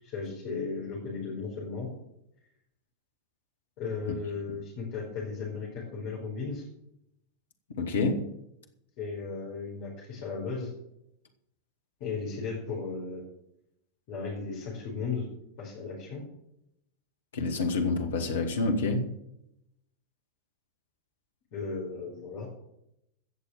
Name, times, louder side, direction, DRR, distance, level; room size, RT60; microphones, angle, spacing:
voice 1, 0.0-1.9 3.8-6.7 9.0-10.7 12.0-13.2 14.1-15.3 15.6-16.2 21.5-22.5, left 4 dB, 45° left, -4 dB, 4.9 m, -35 dB
voice 2, 7.8-8.3 17.3-19.1, left 3 dB, 65° left, 5 dB, 1.9 m, -27 dB
16.5 x 6.8 x 7.4 m, 0.81 s
figure-of-eight pair, 90°, 0 cm